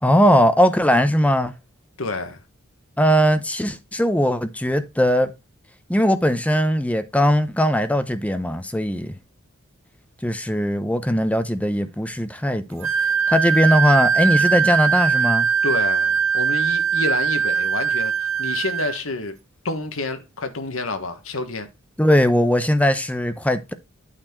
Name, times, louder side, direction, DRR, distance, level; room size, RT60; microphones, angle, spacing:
voice 1, 0.0-1.5 3.0-5.3 5.9-9.2 10.2-12.9 13.3-15.5 22.0-23.7, equal, 5° left, 0.7 m, -19 dB
voice 2, 2.0-2.4 15.6-18.1 18.4-19.4 19.6-21.7, left 3 dB, 70° left, 1.4 m, -28 dB
Wind instrument woodwind instrument, 12.8-19.0, right 6 dB, 75° right, 1.3 m, -21 dB
8.9 x 4.2 x 4.5 m
head